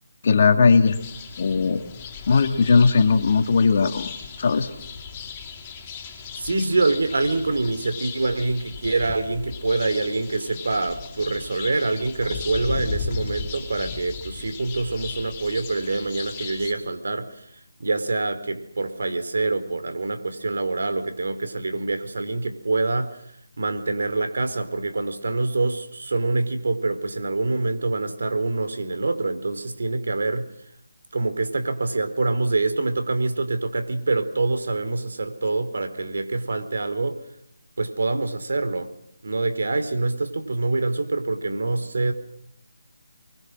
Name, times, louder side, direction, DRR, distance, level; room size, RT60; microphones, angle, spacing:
voice 1, 0.2-1.0 1.4-1.8 2.3-4.1 4.4-4.7, left 5 dB, 45° left, 6 dB, 2.8 m, -18 dB
sound 1, 0.9-16.7, left 5 dB, 25° left, 5.3 m, -36 dB
voice 2, 6.3-23.3 23.6-30.5 31.1-37.2 37.8-38.9 39.2-42.1, right 3 dB, 70° right, 9 dB, 4.6 m, -25 dB
29.0 x 24.5 x 6.4 m, 0.72 s
figure-of-eight pair, 155°, 0 cm